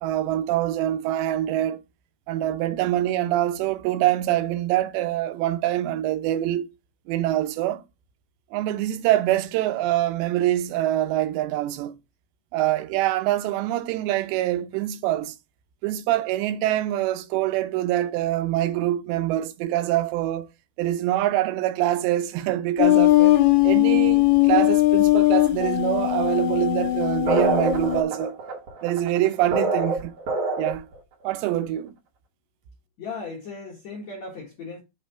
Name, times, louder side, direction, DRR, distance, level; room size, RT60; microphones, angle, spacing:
voice 1, 0.0-1.8 2.3-6.7 7.1-7.8 8.5-12.0 12.5-15.4 15.8-20.5 20.8-23.4 23.6-28.4 28.8-30.1 30.6-30.9 31.2-31.9, right 13 dB, 85° right, 2.9 m, -25 dB
arousal-high-low, 22.8-28.0, left 17 dB, 90° left, 2.8 m, -19 dB
sound 1, 27.3-31.0, right 2 dB, 65° right, 1.5 m, -25 dB
voice 2, 33.0-34.8, left 4 dB, 60° left, 1.9 m, -36 dB
6.4 x 3.1 x 5.5 m
omnidirectional pair, 4.9 m